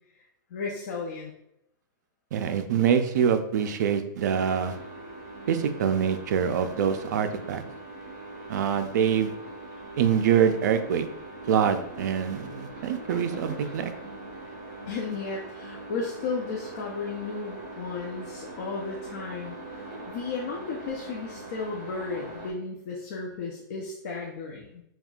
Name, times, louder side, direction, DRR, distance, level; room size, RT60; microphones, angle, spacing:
voice 1, 0.5-1.3 14.9-19.6 20.1-24.8, left 4 dB, 50° left, -2 dB, 0.7 m, -34 dB
voice 2, 2.3-4.8 5.5-7.6 8.5-9.3 10.0-11.1 11.5-13.9, right 8 dB, 60° right, 8 dB, 0.5 m, -25 dB
sound 1, 4.3-22.5, right 2 dB, 30° right, 1.3 m, -41 dB
5.3 x 2.9 x 2.4 m, 0.78 s
hypercardioid pair, 160°, 11 cm